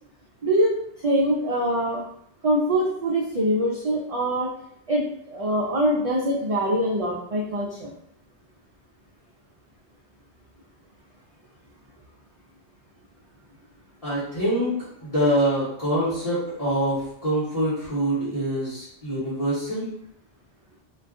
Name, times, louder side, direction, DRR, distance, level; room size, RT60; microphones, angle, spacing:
voice 1, 0.4-2.0 2.4-4.5 4.9-7.9, equal, 60° right, -3 dB, 0.3 m, -24 dB
voice 2, 14.0-14.7 15.0-19.9, right 1 dB, 35° left, -10 dB, 1.2 m, -25 dB
2.5 x 2.3 x 3.5 m, 0.72 s
omnidirectional pair, 1.1 m